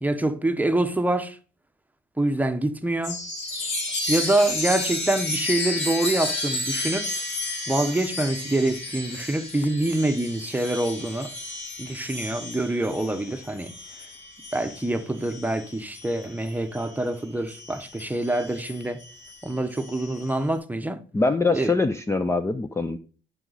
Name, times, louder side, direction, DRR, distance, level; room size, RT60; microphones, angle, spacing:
voice 1, 0.0-1.4 2.2-3.3 4.1-7.1 7.7-11.3 11.8-13.7 14.5-19.0 19.4-21.0 21.5-21.7, right 1 dB, 10° right, 0.9 m, -25 dB
Chime, 3.0-17.0 17.5-20.3, left 2 dB, 65° left, 4.6 m, -32 dB
voice 2, 21.1-23.0, left 3 dB, 15° left, 0.5 m, -23 dB
11.0 x 5.0 x 4.0 m
cardioid pair, 90°, 20 cm